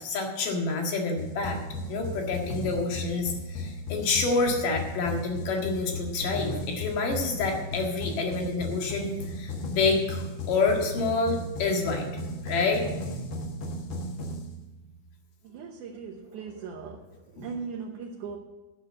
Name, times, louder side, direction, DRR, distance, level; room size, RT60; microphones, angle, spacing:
voice 1, 0.0-1.6 1.9-12.1 12.4-12.8 17.4-17.6, left 3 dB, 90° left, 1 dB, 3.5 m, -28 dB
sound 1, 1.2-15.1, left 1 dB, 60° left, 1.3 m, -36 dB
voice 2, 15.4-17.0 17.4-18.4, right 5 dB, 75° right, -1 dB, 2.4 m, -38 dB
12.0 x 7.0 x 7.7 m, 1.1 s
omnidirectional pair, 3.7 m